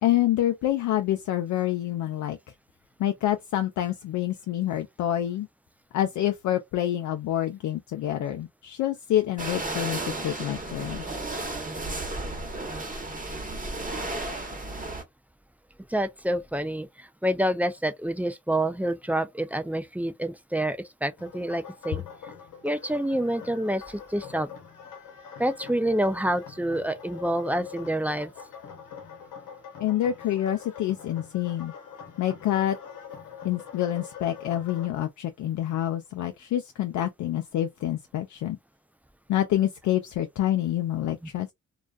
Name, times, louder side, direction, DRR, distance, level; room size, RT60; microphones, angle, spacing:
voice 1, 0.0-2.4 3.0-5.5 5.9-11.0 29.8-31.7 32.2-32.8 33.4-38.6 39.3-41.5, left 12 dB, 65° left, 0.4 m, -27 dB
sound 1, 9.4-15.0, right 2 dB, 25° right, 1.1 m, -33 dB
voice 2, 15.9-22.0 22.6-24.5 25.4-28.3, right 1 dB, 5° right, 0.3 m, -27 dB
sound 2, 21.2-34.9, left 7 dB, 80° left, 0.9 m, -44 dB
2.3 x 2.2 x 2.4 m
supercardioid pair, 55°, 32 cm